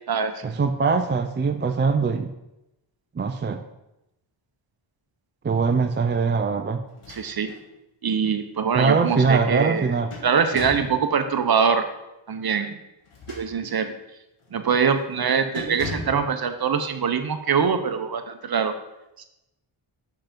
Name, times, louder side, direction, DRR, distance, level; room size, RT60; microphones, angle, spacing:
voice 1, 0.4-2.3 3.2-3.6 5.4-6.8 8.7-10.1 16.1-16.2, right 4 dB, 25° right, 7 dB, 0.4 m, -22 dB
sound 1, 6.9-7.6 8.1-8.2 9.6-11.0 13.0-13.9 14.4-14.6 15.0-15.2 15.5-16.2, left 2 dB, 85° left, 1.9 m, -38 dB
voice 2, 7.1-7.6 8.0-9.9 10.2-11.9 12.3-12.8 13.3-13.9 14.5-18.7, right 6 dB, 50° right, 8 dB, 0.8 m, -23 dB
5.8 x 5.8 x 5.2 m, 0.92 s
wide cardioid pair, 85°, 49 cm